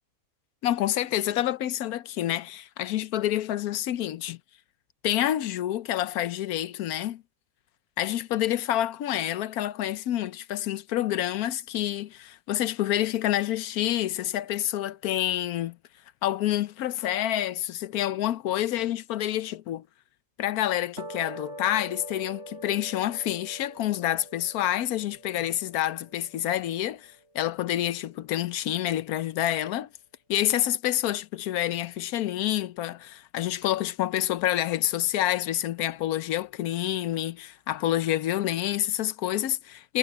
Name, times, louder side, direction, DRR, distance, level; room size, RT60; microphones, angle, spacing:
voice 1, 0.6-4.4 5.0-7.2 8.0-15.8 16.2-19.8 20.4-29.9 30.3-40.0, left 13 dB, 85° left, 1.2 m, -28 dB
sound 1, 21.0-27.5, right 1 dB, 50° right, 6.1 m, -44 dB
omnidirectional pair, 1.6 m